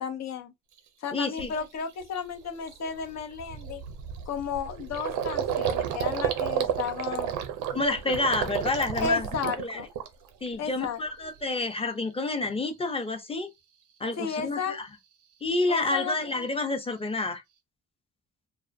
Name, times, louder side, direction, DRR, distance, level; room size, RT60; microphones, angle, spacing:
voice 1, 0.0-0.5 1.0-3.8 4.3-7.4 9.0-9.9 10.6-11.0 14.2-14.8 15.7-16.4, left 6 dB, 60° left, 0.6 m, -33 dB
Gurgling, 0.8-0.9 1.4-1.6 2.0-2.2 2.4-10.5 10.8-11.4, right 9 dB, 90° right, 0.5 m, -32 dB
voice 2, 1.1-1.5 7.7-9.3 9.6-9.8 10.4-13.5 14.0-14.9 15.4-17.4, left 3 dB, 20° left, 0.6 m, -29 dB
2.5 x 2.0 x 2.5 m
cardioid pair, 90°, 30 cm